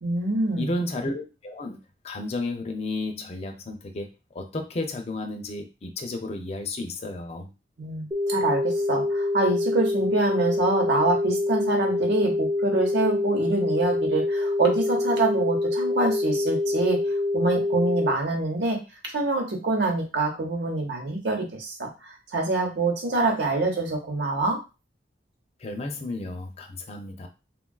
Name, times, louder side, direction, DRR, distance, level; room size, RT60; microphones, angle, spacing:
voice 1, 0.0-0.7 7.8-17.0 17.3-18.8 19.1-24.6, right 2 dB, 65° right, 3 dB, 0.8 m, -25 dB
voice 2, 0.6-1.8 2.0-7.5 25.6-27.3, left 2 dB, 35° left, 4 dB, 0.4 m, -32 dB
sound 1, 8.1-18.1, left 2 dB, 20° right, 0.6 m, -25 dB
3.5 x 2.3 x 2.3 m, 0.29 s
head